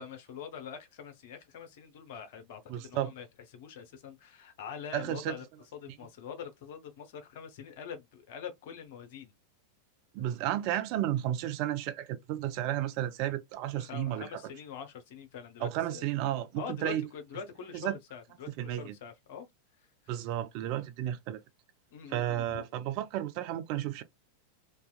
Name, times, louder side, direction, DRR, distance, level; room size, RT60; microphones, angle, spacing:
voice 1, 0.0-3.3 3.5-5.4 5.7-9.3 13.8-16.0 16.6-19.5 21.9-22.6, left 7 dB, 50° left, 0.6 m, -44 dB
voice 2, 2.7-3.1 4.9-5.4 10.1-14.3 15.6-17.1 17.7-17.9 18.6-19.0 20.1-21.4 22.1-24.0, right 12 dB, 45° right, 0.4 m, -32 dB
2.7 x 2.3 x 2.2 m
figure-of-eight pair, 90°, 0 cm